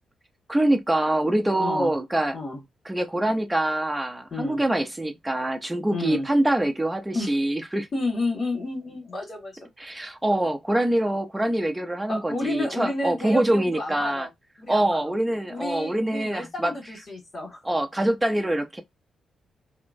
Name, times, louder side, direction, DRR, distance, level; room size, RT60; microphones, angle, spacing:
voice 1, 0.5-2.4 2.9-7.9 9.8-14.3 14.7-16.7 17.6-18.8, right 1 dB, 15° right, 0.6 m, -24 dB
voice 2, 1.6-1.9 2.3-2.6 4.3-4.6 5.9-6.3 7.1-7.3 7.9-9.7 12.1-14.3 14.6-15.2 15.5-17.6, left 2 dB, 50° left, 1.6 m, -31 dB
2.9 x 2.1 x 2.6 m
cardioid pair, 80°, 0 cm